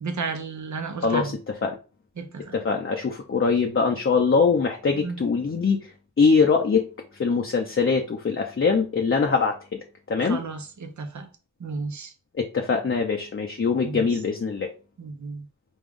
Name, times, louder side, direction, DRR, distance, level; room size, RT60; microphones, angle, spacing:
voice 1, 0.0-1.3 2.2-2.6 5.0-5.2 10.3-11.3 11.6-12.1 13.8-14.0 15.0-15.4, right 4 dB, 60° right, 0.8 m, -33 dB
voice 2, 1.0-1.8 2.5-5.9 6.2-6.8 7.2-10.4 12.4-14.7, left 5 dB, 40° left, 0.7 m, -23 dB
5.3 x 2.3 x 3.6 m
wide cardioid pair, 65°, 32 cm